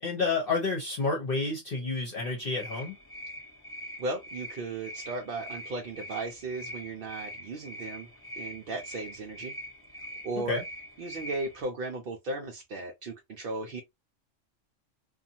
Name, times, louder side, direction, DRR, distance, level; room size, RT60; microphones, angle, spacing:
voice 1, 0.0-2.9 10.4-10.6, left 4 dB, 50° left, 0.9 m, -30 dB
sound 1, 2.2-11.6, equal, 25° left, 0.6 m, -43 dB
voice 2, 4.0-8.1 8.4-9.5 10.2-10.6 11.0-13.8, right 2 dB, 60° right, 0.6 m, -36 dB
2.6 x 2.4 x 2.6 m
omnidirectional pair, 1.3 m